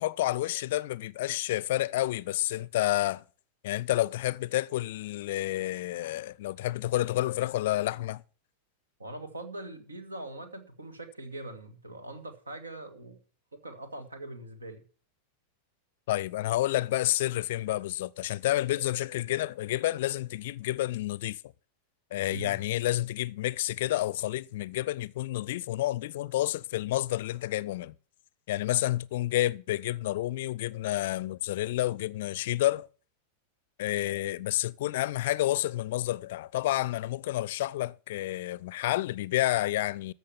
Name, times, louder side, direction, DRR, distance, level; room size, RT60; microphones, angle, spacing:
voice 1, 0.0-3.2 3.6-8.2 16.1-21.4 22.1-27.9 28.5-32.9 33.8-40.1, left 15 dB, 55° left, 0.5 m, -29 dB
voice 2, 9.0-13.2 13.5-14.8 22.3-22.6, right 2 dB, 75° right, 2.1 m, -42 dB
14.0 x 6.5 x 7.1 m
figure-of-eight pair, 90°, 0 cm